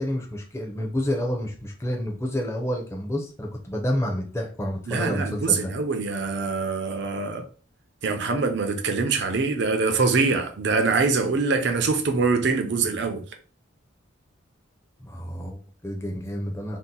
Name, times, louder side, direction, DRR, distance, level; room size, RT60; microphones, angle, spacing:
voice 1, 0.0-5.7 15.0-16.8, equal, 15° left, 0.6 m, -29 dB
voice 2, 4.9-7.4 8.0-13.2, right 4 dB, 55° right, 0.5 m, -24 dB
2.7 x 2.1 x 3.8 m
head